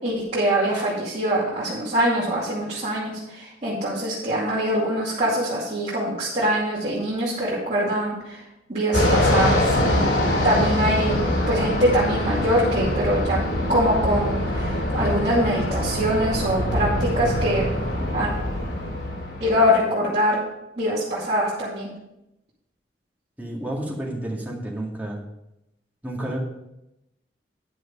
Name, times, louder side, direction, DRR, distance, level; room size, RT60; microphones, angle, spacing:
voice 1, 0.0-8.4 8.7-10.1 10.4-11.2 11.5-13.4 13.7-17.6 18.1-18.3 19.4-20.4 20.8-21.9, equal, 40° right, -9 dB, 2.4 m, -23 dB
Fixed-wing aircraft airplane, 8.9-19.8, left 1 dB, 90° left, 2.5 m, -24 dB
voice 2, 23.4-25.2 26.0-26.4, right 1 dB, 10° right, -2 dB, 2.1 m, -30 dB
10.0 x 6.3 x 5.4 m, 0.88 s
head